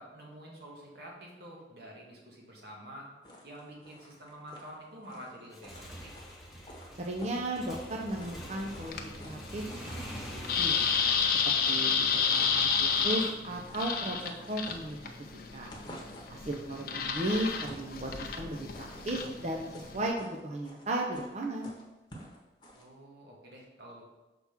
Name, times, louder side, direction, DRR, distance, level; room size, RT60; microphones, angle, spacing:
voice 1, 0.0-3.1 3.4-5.7 6.0-6.1 16.5-16.9 22.7-24.0, equal, 65° right, -2 dB, 1.6 m, -48 dB
sound 1, 3.2-8.4 8.7-9.4 9.7-12.6 12.9-13.3 13.6-15.3 15.6-16.4 16.9-18.0 18.5-22.8, equal, 25° left, 1.0 m, -51 dB
Motorcycle / Engine, 5.4-13.0, equal, ahead, 0.8 m, -45 dB
voice 2, 6.9-9.8 10.1-10.9 11.4-11.9 12.3-15.7 16.3-19.7 19.9-21.7, right 1 dB, 40° right, -1 dB, 0.6 m, -35 dB
sound 2, 8.1-20.1, left 6 dB, 55° left, 0.6 m, -31 dB
5.8 x 3.5 x 5.8 m, 1.1 s
head